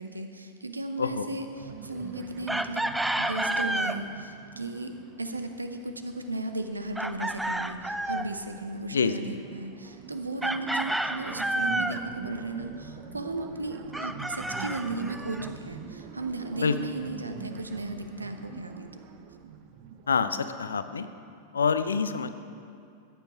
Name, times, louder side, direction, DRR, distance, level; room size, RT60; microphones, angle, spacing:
voice 1, 0.0-2.9 3.2-18.9, right 2 dB, 80° right, 7 dB, 0.7 m, -36 dB
sound 1, 1.5-5.8 6.2-20.6, right 8 dB, 45° right, 0.7 m, -45 dB
Chicken rooster, 2.5-4.0 7.0-8.3 10.4-12.0 13.9-15.5, right 1 dB, 5° right, 0.4 m, -30 dB
voice 2, 20.1-21.1 21.5-22.3, left 5 dB, 70° left, 11 dB, 0.5 m, -26 dB
14.5 x 8.9 x 4.5 m, 2.5 s
figure-of-eight pair, 90°, 0 cm